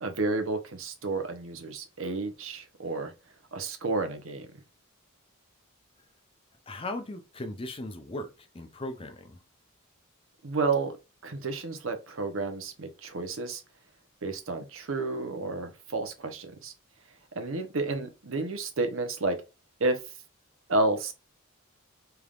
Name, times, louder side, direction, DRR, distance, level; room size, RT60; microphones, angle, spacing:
voice 1, 0.0-3.1 3.5-4.5 10.4-11.0 11.2-13.6 14.2-16.7 17.3-19.4 19.8-20.0 20.7-21.1, right 3 dB, 65° right, 0.8 m, -31 dB
voice 2, 6.7-8.3 8.5-9.4, left 1 dB, 25° left, 0.6 m, -37 dB
3.5 x 3.4 x 2.4 m
head